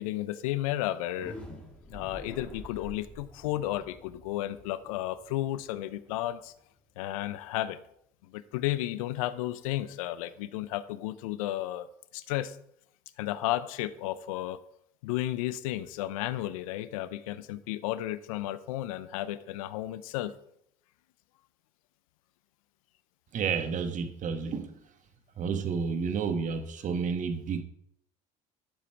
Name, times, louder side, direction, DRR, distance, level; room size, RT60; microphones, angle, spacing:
voice 1, 0.0-1.4 1.9-6.5 7.0-7.8 8.3-11.9 12.1-12.6 13.2-14.6 15.0-20.3, left 14 dB, 90° left, 0.7 m, -33 dB
sound 1, 1.0-6.8, equal, 5° left, 3.1 m, -48 dB
voice 2, 23.3-24.7 25.4-27.6, right 6 dB, 45° right, 1.4 m, -30 dB
11.5 x 7.3 x 4.6 m
supercardioid pair, 85°, 17 cm